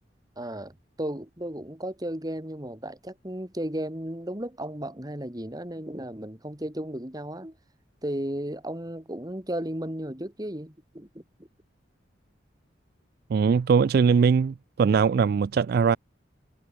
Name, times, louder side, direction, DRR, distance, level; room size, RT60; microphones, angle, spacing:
voice 1, 0.4-7.6 8.0-11.2, right 1 dB, 20° right, 2.4 m, -34 dB
voice 2, 13.3-16.0, right 6 dB, 55° right, 0.3 m, -21 dB
head